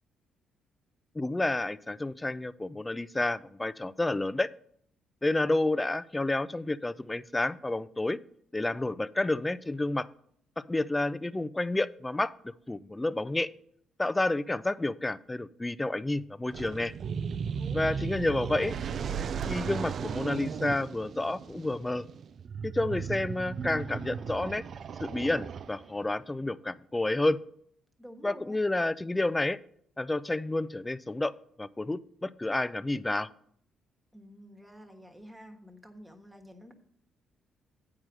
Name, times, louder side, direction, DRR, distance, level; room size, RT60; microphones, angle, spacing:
voice 1, 1.2-4.5 5.2-8.2 8.5-10.1 10.6-13.5 14.0-16.9 17.7-18.8 19.5-22.0 22.6-24.6 25.0-27.4 28.2-29.6 30.0-31.3 31.6-33.3, left 2 dB, 15° left, 17 dB, 0.4 m, -30 dB
sound 1, 16.5-26.0, right 6 dB, 55° right, 0.3 m, -36 dB
voice 2, 17.6-18.5 28.0-28.6 34.1-36.7, equal, 10° right, 4 dB, 1.4 m, -50 dB
9.0 x 4.9 x 6.1 m, 0.66 s
cardioid pair, 90°, 0 cm